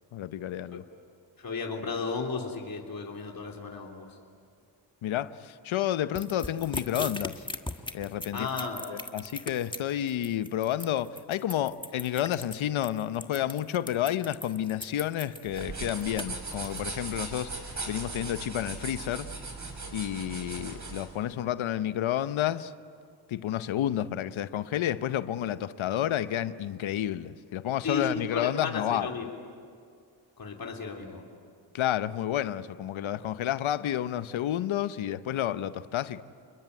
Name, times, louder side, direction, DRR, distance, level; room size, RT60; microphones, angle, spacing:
voice 1, 0.1-0.8 5.0-7.5 7.9-8.5 8.9-19.3 19.9-22.7 23.3-29.1 31.7-36.2, left 11 dB, 85° left, 0.9 m, -30 dB
voice 2, 1.4-4.1 8.3-8.8 27.8-29.3 30.4-31.2, left 4 dB, 50° left, 3.2 m, -34 dB
sound 1, 6.2-16.8, left 1 dB, 10° left, 1.4 m, -39 dB
sound 2, 15.5-21.1, right 3 dB, 40° right, 5.9 m, -38 dB
28.5 x 21.5 x 9.6 m
cardioid pair, 75°, 46 cm